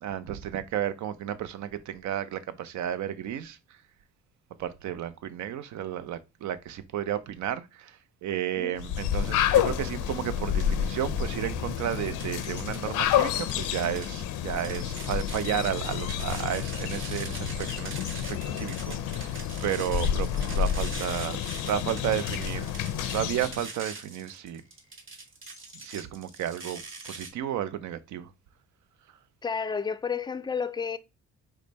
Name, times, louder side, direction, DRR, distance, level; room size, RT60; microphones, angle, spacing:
voice 1, 0.0-3.8 4.6-21.4 21.7-24.6 25.8-28.3, right 10 dB, 70° right, 0.5 m, -33 dB
sound 1, 8.8-23.7, left 10 dB, 90° left, 0.6 m, -29 dB
Thunder, 9.5-15.4, equal, 10° right, 0.8 m, -45 dB
sound 2, 11.7-12.8 13.1-27.3, right 3 dB, 40° right, 1.2 m, -43 dB
voice 2, 29.4-31.0, left 6 dB, 15° left, 0.3 m, -31 dB
4.9 x 2.2 x 4.0 m
cardioid pair, 90°, 30 cm